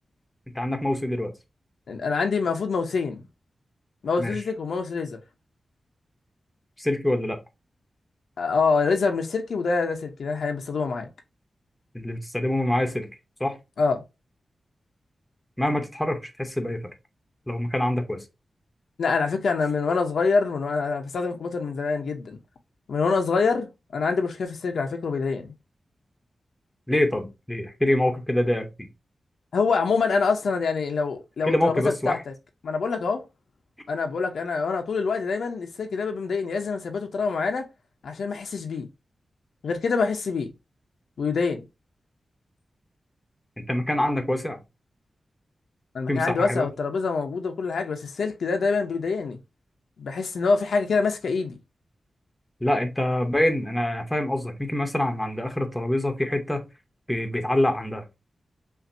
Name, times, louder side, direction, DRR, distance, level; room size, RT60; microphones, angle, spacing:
voice 1, 0.5-1.3 4.2-4.4 6.8-7.4 11.9-13.1 13.4-13.6 15.6-16.9 17.5-18.2 26.9-28.9 31.4-32.2 43.6-44.6 46.1-46.7 52.6-56.7 57.1-58.0, left 1 dB, 5° left, 0.8 m, -25 dB
voice 2, 1.9-3.2 4.0-5.2 8.4-11.1 13.8-14.0 19.0-22.4 22.9-25.5 29.5-32.2 32.6-33.2 33.9-37.7 38.0-38.9 39.6-40.5 41.2-41.6 45.9-49.4 50.0-51.6, left 4 dB, 85° left, 0.7 m, -25 dB
5.5 x 2.6 x 2.6 m
wide cardioid pair, 165°, 0 cm